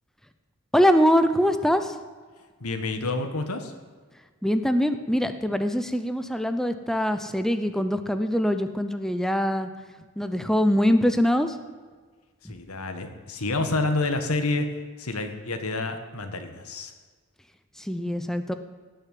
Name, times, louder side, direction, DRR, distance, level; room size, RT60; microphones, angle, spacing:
voice 1, 0.7-1.9 4.4-9.7 10.2-11.5 17.8-18.5, equal, ahead, 9 dB, 0.6 m, -23 dB
voice 2, 2.6-3.7 12.5-14.7 15.0-16.9, left 2 dB, 90° left, 7 dB, 1.6 m, -28 dB
17.0 x 6.7 x 9.2 m, 1.5 s
head